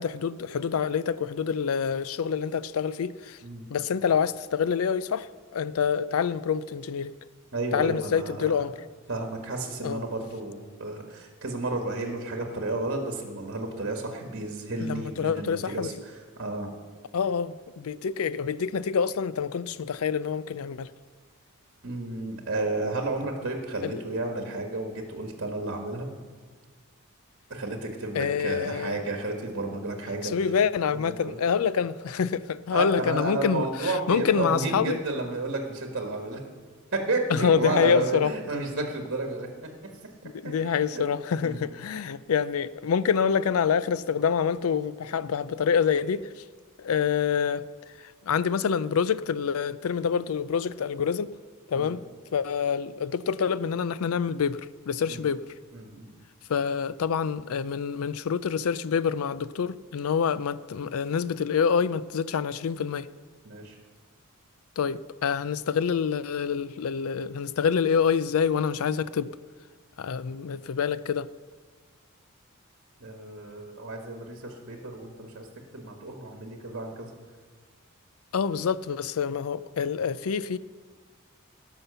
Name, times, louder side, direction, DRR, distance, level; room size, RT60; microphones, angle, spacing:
voice 1, 0.0-3.4 3.7-7.1 7.7-8.7 9.8-10.0 14.8-15.9 17.1-20.9 23.8-24.0 28.1-28.9 30.2-35.0 37.3-38.3 40.2-46.2 46.8-47.6 48.0-51.3 51.7-52.0 52.3-54.6 54.9-55.4 56.5-63.1 64.8-69.3 70.0-71.3 78.3-80.6, left 6 dB, 75° left, 0.4 m, -26 dB
voice 2, 7.5-8.6 9.1-16.7 21.8-26.1 27.5-30.3 30.9-31.4 32.7-36.4 36.9-39.7 40.2-41.0 41.4-41.7 51.7-52.0 55.1-55.3 55.7-56.1 63.4-63.8 73.0-75.5 75.7-77.1, right 2 dB, 55° right, 1.5 m, -32 dB
17.0 x 5.8 x 6.8 m
head